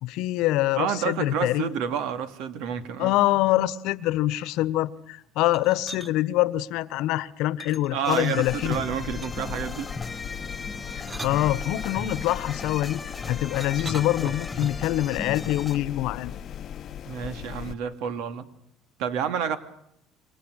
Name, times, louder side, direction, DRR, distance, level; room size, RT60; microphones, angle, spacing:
voice 1, 0.0-1.7 3.0-8.8 10.9-16.3, left 15 dB, 70° left, 1.2 m, -25 dB
voice 2, 0.8-3.1 7.9-9.9 17.1-18.5 19.0-19.6, right 8 dB, 70° right, 2.6 m, -29 dB
sound 1, 5.4-6.1 7.6-8.5 9.2-9.6 10.7-12.1 13.6-14.9, right 2 dB, 15° right, 1.1 m, -40 dB
sound 2, 8.0-15.8, left 4 dB, 15° left, 2.0 m, -37 dB
sound 3, 8.4-17.8, left 9 dB, 45° left, 1.0 m, -38 dB
27.5 x 24.5 x 6.5 m
cardioid pair, 135°, 0 cm